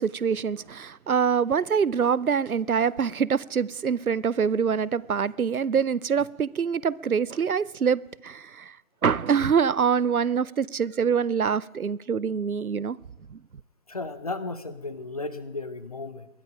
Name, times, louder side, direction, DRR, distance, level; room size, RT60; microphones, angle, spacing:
voice 1, 0.0-8.8 9.0-13.0 13.3-13.4, right 6 dB, 90° right, 0.6 m, -25 dB
voice 2, 13.9-16.3, left 3 dB, 25° left, 0.6 m, -34 dB
21.0 x 12.5 x 4.9 m
figure-of-eight pair, 145°, 42 cm